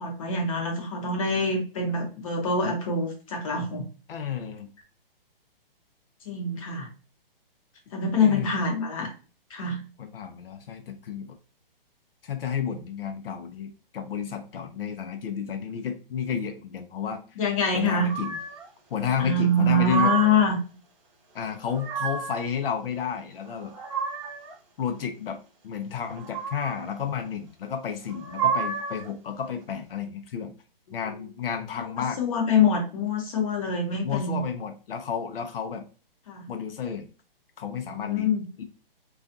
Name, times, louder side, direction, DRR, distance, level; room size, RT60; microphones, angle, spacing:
voice 1, 0.0-3.9 6.2-6.9 7.9-9.1 9.5-9.8 17.4-18.1 19.2-20.6 32.2-34.4 36.3-36.4 37.8-38.4, left 3 dB, 35° left, 2 dB, 0.8 m, -25 dB
voice 2, 4.1-4.7 8.1-8.5 10.0-11.4 12.2-17.2 17.7-18.4 18.9-20.1 21.3-23.7 24.8-25.4 25.6-30.5 30.9-32.2 34.0-35.8 36.5-37.1 37.6-38.3 38.6-38.7, left 7 dB, 70° left, 6 dB, 0.6 m, -31 dB
sound 1, 18.1-18.7 19.5-20.5 21.5-22.5 23.4-24.5 26.1-26.9 28.0-29.1, right 7 dB, 35° right, 0.7 m, -30 dB
2.4 x 2.3 x 2.6 m, 0.35 s
hypercardioid pair, 160°, 29 cm